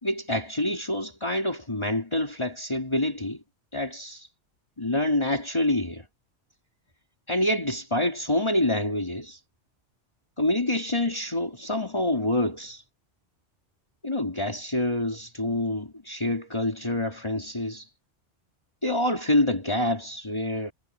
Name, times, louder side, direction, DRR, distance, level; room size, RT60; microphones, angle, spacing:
voice 1, 0.0-3.4 3.7-4.3 4.8-6.0 7.3-9.4 10.4-12.8 14.0-17.9 18.8-20.7, left 1 dB, 25° left, 3.7 m, -27 dB
omnidirectional pair, 1.2 m